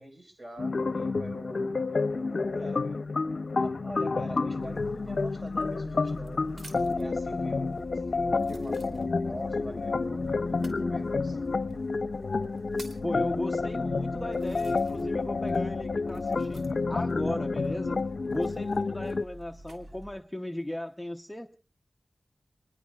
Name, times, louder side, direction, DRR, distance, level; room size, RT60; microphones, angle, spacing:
voice 1, 0.0-1.7 2.1-3.1 3.6-11.4, right 1 dB, 25° right, 4 dB, 4.9 m, -45 dB
sound 1, 0.6-19.2, left 3 dB, 60° left, 0.7 m, -29 dB
sound 2, 4.6-20.2, right 1 dB, 60° right, 3.0 m, -48 dB
sound 3, 5.4-7.1 7.8-7.9 8.4-9.4 10.5-10.8 11.7-11.8 12.3-13.1 13.8-13.9 14.3-15.2 15.5-17.0 18.2-19.8 20.5-20.9, right 2 dB, 80° right, 3.2 m, -53 dB
voice 2, 13.0-21.6, left 1 dB, 10° left, 4 dB, 0.8 m, -37 dB
28.0 x 21.0 x 2.4 m, 0.37 s
wide cardioid pair, 100°, 0 cm